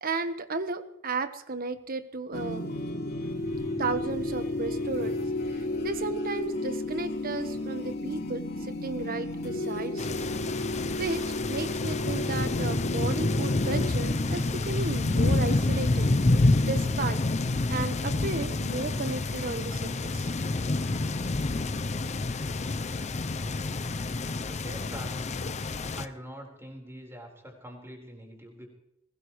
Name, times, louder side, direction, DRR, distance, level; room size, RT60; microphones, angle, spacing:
voice 1, 0.0-2.6 3.8-5.2 5.8-10.2 11.0-16.1 16.6-17.2 17.7-20.4, right 3 dB, 45° right, 10 dB, 1.2 m, -34 dB
sound 1, 2.3-14.4, left 1 dB, 55° left, 3.1 m, -32 dB
sound 2, 10.0-26.1, left 2 dB, 35° left, 0.6 m, -28 dB
voice 2, 24.3-25.3 25.9-28.7, equal, 15° right, 0 dB, 4.4 m, -44 dB
21.5 x 19.0 x 3.2 m, 0.82 s
head